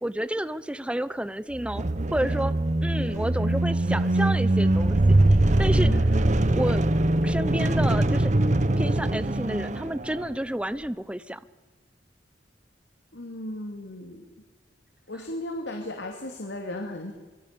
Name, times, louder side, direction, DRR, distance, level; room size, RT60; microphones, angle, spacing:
voice 1, 0.0-1.8 2.1-2.5 2.8-5.0 5.6-5.9 6.5-6.8 7.2-8.3 8.8-11.4, right 1 dB, 5° right, 15 dB, 0.7 m, -30 dB
sound 1, 1.5-10.3, right 1 dB, 40° right, 1.1 m, -22 dB
voice 2, 5.7-6.0 13.1-14.3 15.1-17.1, left 1 dB, 75° left, 3 dB, 2.8 m, -35 dB
25.0 x 23.5 x 6.9 m, 1.3 s
head